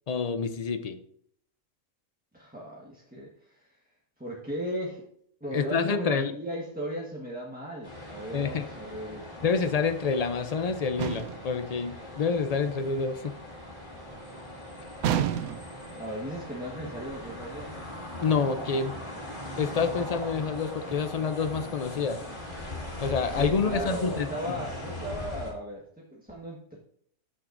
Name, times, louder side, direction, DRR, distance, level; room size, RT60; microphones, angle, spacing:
voice 1, 0.1-1.0 5.5-6.3 8.3-8.6 9.4-13.2 18.2-19.0 19.6-22.2 23.0-24.3, left 5 dB, 80° left, 8 dB, 0.3 m, -27 dB
voice 2, 2.3-3.8 4.2-5.1 5.4-9.6 16.0-17.8 23.4-26.8, equal, 5° right, -4 dB, 1.2 m, -37 dB
sound 1, 7.8-25.5, left 1 dB, 35° left, 2.4 m, -40 dB
sound 2, 11.0-11.5 15.0-15.8, right 10 dB, 90° right, 1.1 m, -29 dB
14.5 x 6.1 x 2.6 m, 0.66 s
omnidirectional pair, 1.5 m